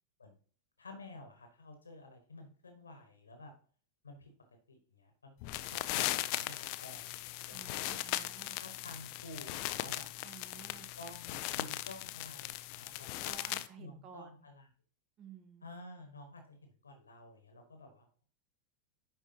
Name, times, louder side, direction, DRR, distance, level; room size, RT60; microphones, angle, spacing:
voice 1, 0.8-3.5 4.0-4.3 4.7-6.6 6.8-7.1 7.5-7.8 8.6-10.0 10.9-14.7 15.6-18.2, left 2 dB, 75° left, 5 dB, 1.3 m, -52 dB
sound 1, 5.4-13.7, left 16 dB, 45° left, 0.4 m, -38 dB
voice 2, 7.5-8.6 10.2-10.9 13.2-14.3 15.2-15.7, right 8 dB, 35° right, 8 dB, 1.2 m, -53 dB
10.5 x 4.4 x 2.8 m, 0.42 s
figure-of-eight pair, 90°, 0 cm